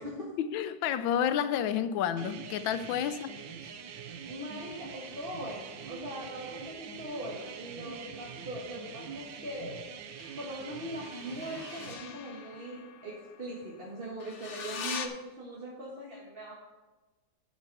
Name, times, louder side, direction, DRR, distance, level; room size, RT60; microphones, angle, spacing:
voice 1, 0.4-3.4, left 9 dB, 80° left, 1.3 m, -30 dB
sound 1, 2.2-11.9, right 7 dB, 75° right, 1.4 m, -44 dB
voice 2, 3.9-9.8 10.3-16.6, equal, 30° right, 1.6 m, -41 dB
sound 2, 4.7-7.8 10.1-15.1, left 6 dB, 55° left, 0.8 m, -45 dB
10.5 x 7.4 x 4.7 m
omnidirectional pair, 2.1 m